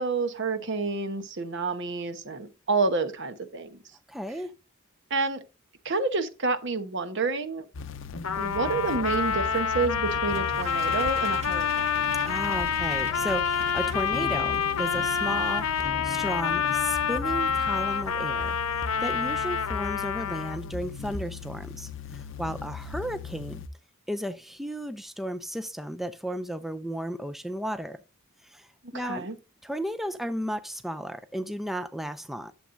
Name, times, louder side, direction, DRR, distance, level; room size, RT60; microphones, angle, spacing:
voice 1, 0.0-3.8 5.1-5.4 5.8-7.7 8.4-12.1 28.9-29.4, right 3 dB, 60° right, 1.0 m, -29 dB
voice 2, 4.1-4.5 12.2-18.6 19.0-23.6 24.1-28.0 28.4-28.7 28.9-29.3 29.6-32.5, equal, ahead, 0.4 m, -34 dB
sound 1, 7.7-23.7, left 5 dB, 60° left, 0.6 m, -38 dB
Trumpet, 8.2-20.7, left 7 dB, 90° left, 0.9 m, -28 dB
sound 2, 10.3-15.9, right 1 dB, 30° right, 1.9 m, -44 dB
11.5 x 7.3 x 2.6 m
head